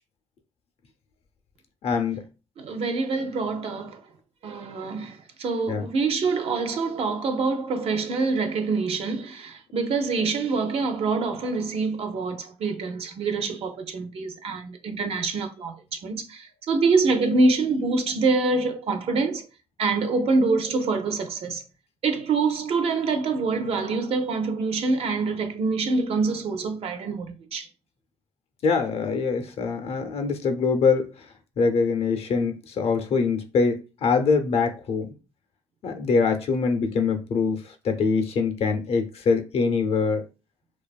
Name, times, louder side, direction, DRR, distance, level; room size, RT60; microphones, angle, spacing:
voice 1, 1.8-2.2 5.7-5.8 28.6-31.1 31.6-35.1 35.8-40.2, left 5 dB, 60° left, 0.5 m, -24 dB
voice 2, 2.6-4.0 4.4-19.4 19.8-21.6 22.0-27.7, right 3 dB, 60° right, 0.5 m, -25 dB
2.6 x 2.3 x 2.2 m
cardioid pair, 80°, 11 cm